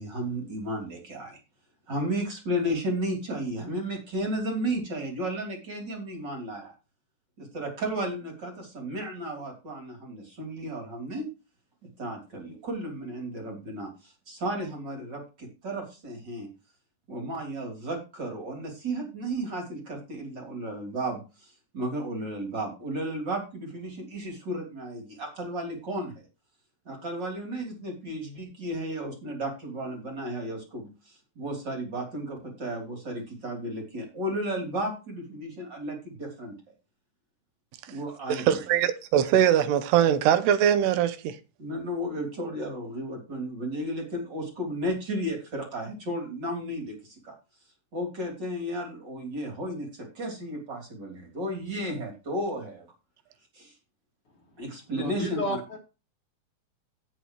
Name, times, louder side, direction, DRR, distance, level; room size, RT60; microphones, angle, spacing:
voice 1, 0.0-1.4 1.9-6.7 7.4-11.3 12.0-13.9 14.3-16.5 17.1-21.2 21.7-26.1 26.9-30.9 31.4-36.5 37.9-38.6 41.6-46.9 47.2-47.3 47.9-52.8 53.6-53.7 54.6-55.4, right 1 dB, 30° right, 3.6 m, -33 dB
voice 2, 38.3-41.4, right 10 dB, 85° right, 3.0 m, -22 dB
voice 3, 54.9-55.8, equal, 40° left, 2.5 m, -31 dB
17.5 x 6.1 x 3.1 m
omnidirectional pair, 4.6 m